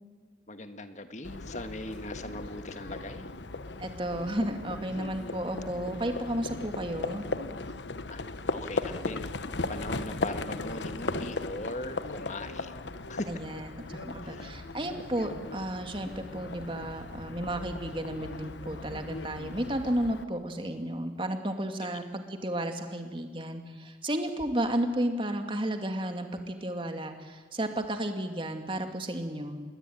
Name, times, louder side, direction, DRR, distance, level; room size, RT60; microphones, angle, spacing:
voice 1, 0.5-3.3 8.1-8.2 8.5-9.3 9.7-13.4 14.2-14.5, left 1 dB, 40° left, 9 dB, 1.6 m, -40 dB
Livestock farm animals working animals, 1.2-20.2, left 3 dB, 75° left, 1.1 m, -37 dB
voice 2, 3.8-7.3 13.3-29.6, right 1 dB, 25° right, 6 dB, 2.3 m, -33 dB
26.5 x 21.5 x 9.4 m, 1.4 s
head